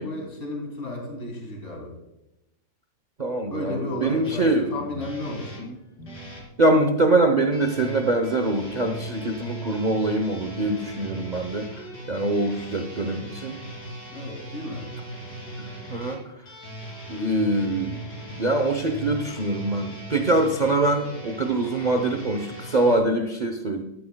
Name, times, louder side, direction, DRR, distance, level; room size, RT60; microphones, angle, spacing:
voice 1, 0.0-1.9 3.5-5.5 14.1-14.8, left 1 dB, 45° left, 0 dB, 3.2 m, -33 dB
voice 2, 3.2-4.7 5.6-5.8 6.6-13.6 15.6-16.2 17.1-18.0 18.4-23.8, right 2 dB, 40° right, 6 dB, 0.7 m, -24 dB
sound 1, 4.2-6.5 7.5-23.0, right 1 dB, 75° left, 3.6 m, -39 dB
14.5 x 12.0 x 2.2 m, 0.90 s
omnidirectional pair, 1.8 m